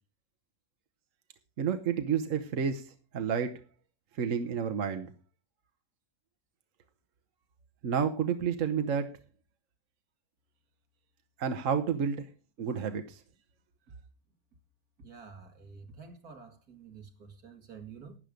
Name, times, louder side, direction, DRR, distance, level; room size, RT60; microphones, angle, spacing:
voice 1, 1.6-3.6 4.1-5.1 7.8-9.1 11.4-12.3 12.6-13.2, right 7 dB, 60° right, 1.3 m, -30 dB
voice 2, 15.0-18.2, right 5 dB, 80° right, 2.5 m, -49 dB
12.5 x 9.8 x 5.1 m
omnidirectional pair, 1.6 m